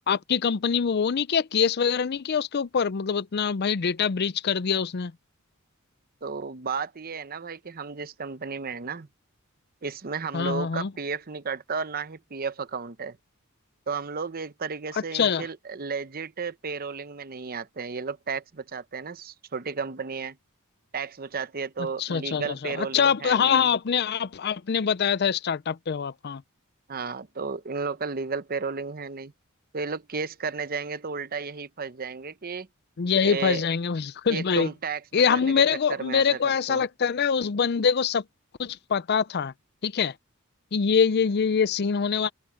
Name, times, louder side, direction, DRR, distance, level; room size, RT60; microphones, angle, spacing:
voice 1, 0.1-5.1 10.3-10.9 15.1-15.5 22.0-26.4 33.0-34.7 35.1-38.2 38.6-39.5 39.8-40.1 40.7-42.3, left 6 dB, 45° left, 0.5 m, -24 dB
voice 2, 6.2-9.1 9.8-13.2 13.9-20.4 20.9-23.7 26.9-29.3 29.7-32.7 33.2-33.6 34.3-35.0 35.3-35.5 35.9-36.8, right 5 dB, 40° right, 0.8 m, -33 dB
head